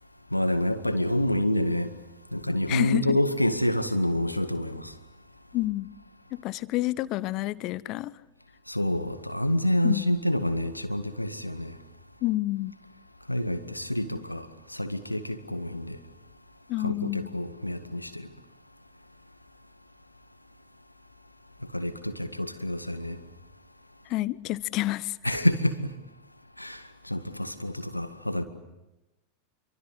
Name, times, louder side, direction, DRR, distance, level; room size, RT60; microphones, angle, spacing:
voice 1, 0.3-1.9 2.3-4.9 8.7-11.8 13.3-16.0 16.8-18.3 21.7-23.2 25.2-25.8 26.6-28.4, left 1 dB, 85° left, 1.9 m, -28 dB
voice 2, 2.7-3.2 5.5-5.9 6.4-8.1 9.8-10.1 12.2-12.7 16.7-17.3 24.1-25.4, left 17 dB, 40° left, 1.0 m, -29 dB
27.5 x 24.5 x 8.3 m
figure-of-eight pair, 90°, 0 cm